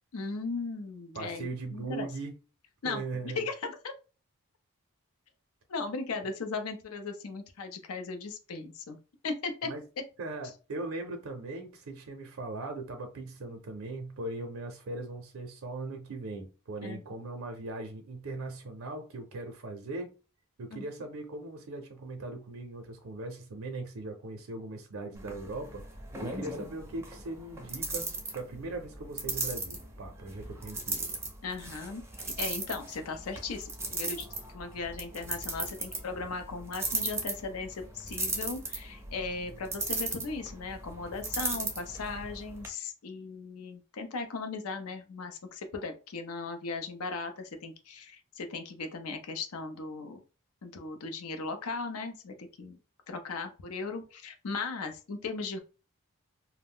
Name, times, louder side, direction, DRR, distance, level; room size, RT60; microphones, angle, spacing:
voice 1, 0.1-2.1 2.8-3.9 5.7-9.0 9.2-9.7 16.8-17.0 20.7-20.9 26.5-26.6 31.4-34.3 34.5-50.2 50.6-52.8 53.1-55.6, left 4 dB, 75° left, 0.5 m, -37 dB
voice 2, 1.1-2.3 2.8-3.4 9.6-9.8 10.2-20.1 20.6-25.8 26.2-31.1, right 2 dB, 65° right, 0.5 m, -39 dB
sound 1, 25.1-42.7, right 3 dB, 10° right, 0.4 m, -37 dB
2.3 x 2.1 x 3.5 m
head